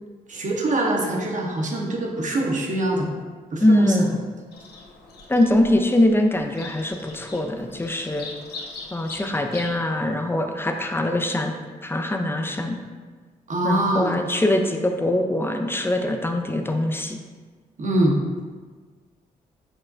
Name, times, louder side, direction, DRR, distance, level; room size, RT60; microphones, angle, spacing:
voice 1, 0.3-3.1 3.5-4.1 13.5-14.2 17.8-18.2, right 1 dB, 45° right, 0 dB, 0.8 m, -24 dB
voice 2, 3.6-4.2 5.3-8.3 8.9-11.6 11.8-12.8 13.6-17.2, left 1 dB, 10° left, 4 dB, 0.5 m, -22 dB
Bird vocalization bird call bird song, 4.5-9.8, left 3 dB, 65° left, 0.6 m, -41 dB
6.2 x 2.1 x 2.5 m, 1.5 s
hypercardioid pair, 45°, 18 cm